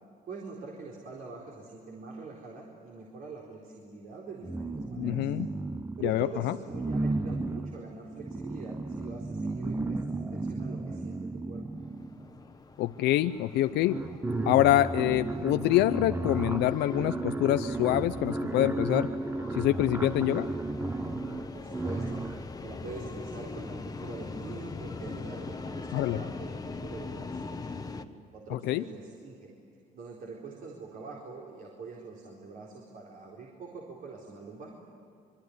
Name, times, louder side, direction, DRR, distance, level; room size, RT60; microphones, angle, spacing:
voice 1, 0.2-5.3 6.0-11.6 21.5-22.2 22.6-27.7 28.3-29.5 29.9-34.7, right 4 dB, 55° right, -2 dB, 4.2 m, -44 dB
sound 1, 4.4-6.2 6.7-12.4 13.3-13.4 13.7-22.5, right 2 dB, 15° right, 1.0 m, -34 dB
voice 2, 5.0-5.5 6.0-6.5 12.8-14.0 14.5-19.1 19.5-20.5 25.9-26.2 28.5-28.8, left 14 dB, 85° left, 11 dB, 0.7 m, -26 dB
sound 2, 11.8-28.0, left 4 dB, 20° left, 1.3 m, -42 dB
26.0 x 23.5 x 9.7 m, 2.6 s
cardioid pair, 110°, 17 cm